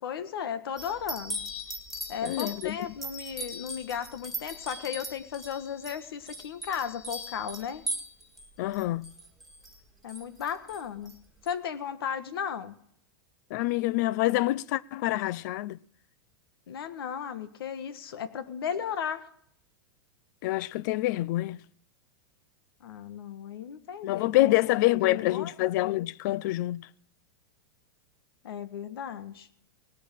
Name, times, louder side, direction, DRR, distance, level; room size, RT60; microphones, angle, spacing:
voice 1, 0.0-1.4 2.1-7.8 10.0-11.1 11.4-12.7 16.7-19.3 22.8-24.5 24.8-25.5 28.4-29.5, left 8 dB, 85° left, 1.5 m, -35 dB
sound 1, 0.8-8.5 8.7-9.8 10.1-10.8 11.1-11.2 11.5-11.6, right 1 dB, ahead, 2.0 m, -39 dB
voice 2, 2.2-2.8 8.6-9.1 13.5-15.8 20.4-21.6 24.0-26.9, left 17 dB, 50° left, 0.5 m, -26 dB
18.5 x 8.6 x 7.6 m
supercardioid pair, 150°, 12 cm